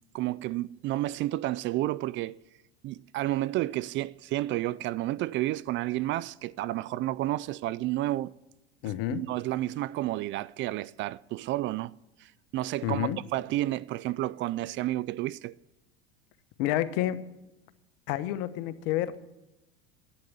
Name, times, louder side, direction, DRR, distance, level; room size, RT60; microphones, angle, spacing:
voice 1, 0.1-2.4 2.8-8.3 9.1-11.9 12.2-15.5, right 16 dB, 40° right, 0.4 m, -31 dB
voice 2, 8.8-9.2 12.8-13.2 16.6-17.2 18.1-19.2, left 13 dB, 60° left, 1.0 m, -29 dB
11.0 x 9.2 x 8.5 m
hypercardioid pair, 85°, 31 cm